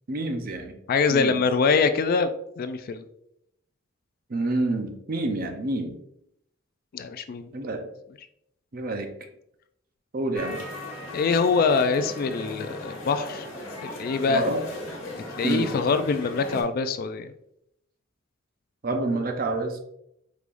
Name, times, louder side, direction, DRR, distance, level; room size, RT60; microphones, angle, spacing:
voice 1, 0.1-0.8 1.1-1.4 4.3-6.0 7.5-7.8 8.7-9.1 10.1-10.6 14.3-14.6 15.4-15.7 18.8-19.8, right 2 dB, 45° right, 5 dB, 0.6 m, -28 dB
voice 2, 0.9-2.3 2.6-3.0 6.9-7.5 11.1-13.5 13.8-14.4 15.1-17.3, left 5 dB, 50° left, 10 dB, 0.3 m, -24 dB
sound 1, 10.3-16.6, left 1 dB, 70° left, 1.4 m, -37 dB
4.8 x 3.5 x 2.5 m, 0.77 s
head